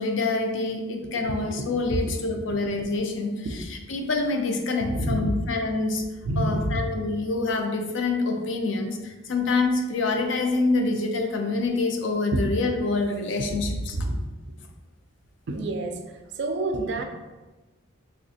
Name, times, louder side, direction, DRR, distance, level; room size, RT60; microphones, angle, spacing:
voice 1, 0.0-3.5 3.9-6.0 6.4-14.0, left 3 dB, 65° left, 4 dB, 0.4 m, -26 dB
voice 2, 1.5-2.0 3.4-3.5 4.9-5.4 6.2-6.8 12.3-12.4 13.6-14.2 14.4-14.5 15.5-16.0 16.4-17.0, right 1 dB, 55° right, 5 dB, 0.3 m, -28 dB
3.2 x 3.1 x 2.7 m, 1.2 s
head